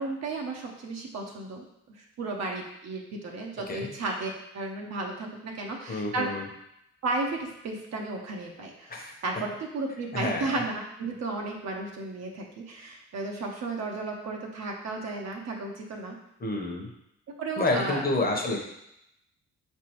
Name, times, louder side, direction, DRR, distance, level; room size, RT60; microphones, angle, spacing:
voice 1, 0.0-1.6 1.9-6.3 7.0-16.2 17.4-18.0, right 3 dB, 60° right, 0 dB, 0.8 m, -34 dB
voice 2, 5.9-6.5 8.9-9.1 10.1-10.5 16.4-16.9 17.6-18.6, left 2 dB, 30° left, 1 dB, 0.9 m, -28 dB
4.9 x 3.4 x 3.0 m, 0.81 s
cardioid pair, 90°, 30 cm